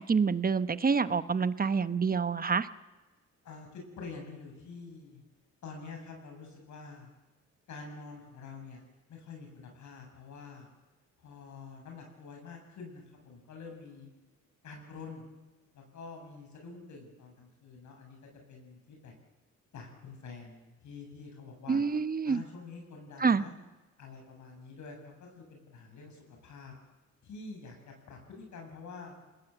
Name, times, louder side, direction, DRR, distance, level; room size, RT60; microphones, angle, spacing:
voice 1, 0.0-2.7 21.7-22.4 23.2-23.4, right 5 dB, 30° right, 14 dB, 1.1 m, -27 dB
voice 2, 3.4-5.2 5.6-7.1 7.7-8.8 9.1-10.7 11.2-14.1 14.6-15.2 15.7-19.1 19.7-21.8 22.2-23.5 24.0-26.7 27.2-29.1, left 4 dB, 70° left, 2 dB, 7.8 m, -47 dB
27.5 x 20.0 x 8.1 m, 1.2 s
cardioid pair, 90°, 30 cm